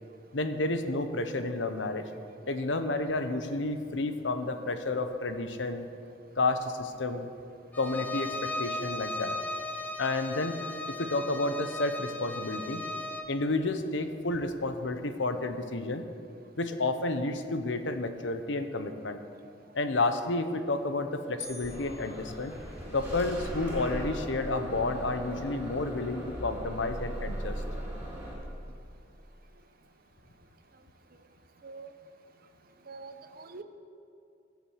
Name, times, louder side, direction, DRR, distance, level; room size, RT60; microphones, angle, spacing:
voice 1, 0.3-2.0 2.5-5.9 6.4-7.3 7.8-9.4 10.0-10.6 10.9-12.9 13.3-16.1 16.6-19.2 19.7-22.5 22.9-27.5, left 2 dB, 75° left, 8 dB, 1.0 m, -31 dB
Bowed string instrument, 7.7-13.3, left 2 dB, 10° left, 0.9 m, -36 dB
sound 1, 21.4-23.2, left 4 dB, 35° left, 1.1 m, -47 dB
Bus / Engine starting, 21.6-28.3, equal, 10° right, 4.1 m, -38 dB
voice 2, 32.9-33.6, right 3 dB, 50° right, 8 dB, 0.8 m, -44 dB
16.0 x 7.3 x 7.4 m, 2.5 s
head